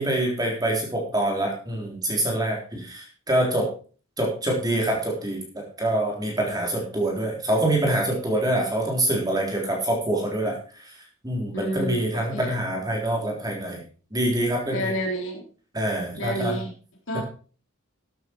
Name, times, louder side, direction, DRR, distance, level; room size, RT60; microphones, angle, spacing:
voice 1, 0.0-3.7 4.2-10.9 11.2-13.8 14.1-14.9 15.7-16.6 17.1-17.2, right 1 dB, 15° right, 0 dB, 3.6 m, -25 dB
voice 2, 11.5-12.6 14.7-15.4 16.2-16.7 17.1-17.2, equal, 60° left, 1 dB, 3.5 m, -29 dB
13.5 x 8.8 x 4.5 m, 0.39 s
head